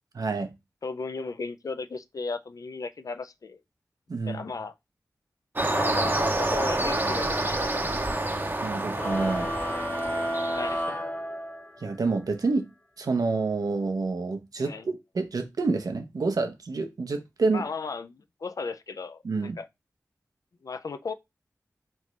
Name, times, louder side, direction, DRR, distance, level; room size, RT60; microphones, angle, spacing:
voice 1, 0.2-0.5 4.1-4.4 8.6-9.5 11.8-12.7 13.0-17.7 19.2-19.6, right 3 dB, 80° right, 0.7 m, -28 dB
voice 2, 0.8-3.6 4.3-4.7 5.7-7.9 10.5-10.9 14.6-14.9 17.5-19.7 20.6-21.1, left 4 dB, 70° left, 0.4 m, -35 dB
sound 1, 5.6-10.8, right 2 dB, 35° right, 0.7 m, -28 dB
sound 2, 8.9-11.9, equal, 35° left, 1.4 m, -31 dB
3.8 x 3.3 x 3.1 m
cardioid pair, 40°, 6 cm